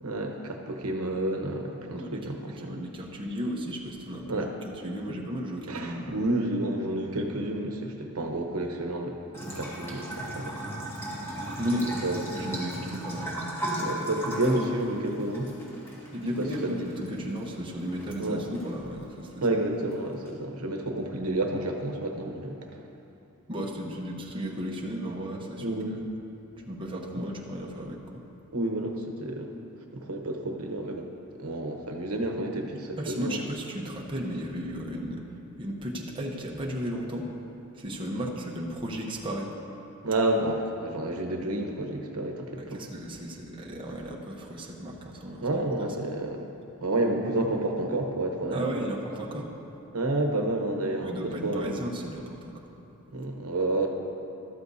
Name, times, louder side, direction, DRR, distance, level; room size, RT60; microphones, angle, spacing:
voice 1, 0.0-2.8 4.3-4.5 5.7-9.2 9.5-10.6 12.0-12.3 13.8-15.5 16.4-16.8 18.2-18.4 19.4-22.6 25.6-26.0 28.5-29.5 29.9-31.1 31.4-33.4 40.0-42.9 45.4-46.5 46.8-48.6 49.9-51.8 53.1-53.9, right 1 dB, 75° right, 3 dB, 1.0 m, -30 dB
voice 2, 2.6-4.4 4.8-6.2 11.6-12.1 12.3-13.4 16.1-19.6 23.5-25.7 26.7-28.2 33.0-35.2 35.6-37.3 37.7-39.5 42.6-45.6 46.1-46.2 48.5-49.5 51.0-52.6, equal, 25° right, -1 dB, 0.9 m, -34 dB
Bathtub (filling or washing) / Trickle dribble, 9.3-20.3, right 1 dB, 10° left, 1.9 m, -37 dB
13.0 x 13.0 x 2.7 m, 3.0 s
head